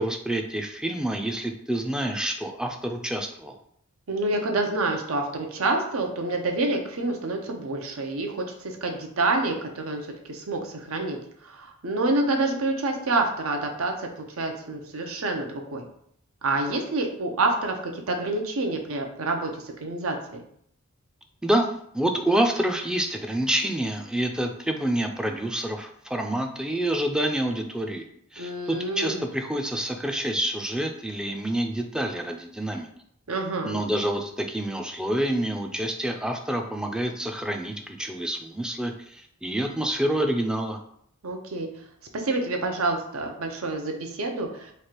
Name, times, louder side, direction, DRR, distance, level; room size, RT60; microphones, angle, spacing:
voice 1, 0.0-3.6 21.4-21.7 21.9-28.1 28.3-32.9 33.6-40.8, right 1 dB, 5° right, 3 dB, 0.3 m, -27 dB
voice 2, 4.1-15.8 16.4-20.2 28.4-29.2 33.3-33.8 41.2-41.7 42.1-44.7, right 2 dB, 85° right, 3 dB, 0.7 m, -28 dB
3.2 x 2.4 x 4.4 m, 0.69 s
head